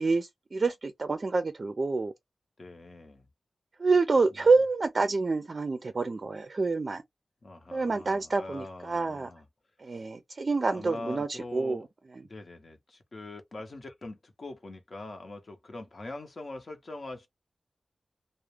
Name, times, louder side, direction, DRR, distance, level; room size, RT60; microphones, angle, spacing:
voice 1, 0.0-2.1 3.8-7.0 7.7-9.3 9.8-11.8, right 3 dB, 50° right, 0.4 m, -27 dB
voice 2, 2.6-3.3 7.4-9.5 9.9-10.1 10.7-11.8 12.3-17.3, left 2 dB, 55° left, 0.7 m, -43 dB
2.3 x 2.0 x 3.1 m
wide cardioid pair, 80°, 0 cm